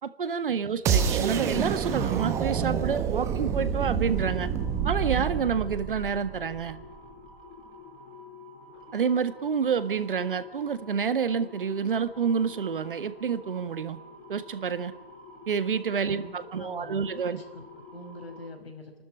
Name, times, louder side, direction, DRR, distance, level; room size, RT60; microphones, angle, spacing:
voice 1, 0.0-4.5 4.8-6.8 8.9-14.0 14.3-14.9 15.5-17.4, right 6 dB, 60° right, 12 dB, 1.7 m, -28 dB
voice 2, 0.9-1.3 16.1-16.3 16.6-18.9, left 1 dB, 80° left, 6 dB, 5.4 m, -44 dB
sound 1, 0.9-6.8, right 7 dB, 10° right, 1.0 m, -28 dB
sound 2, 4.0-18.4, left 3 dB, 20° left, 6.1 m, -48 dB
28.5 x 12.5 x 10.0 m, 0.95 s
hypercardioid pair, 150°, 30 cm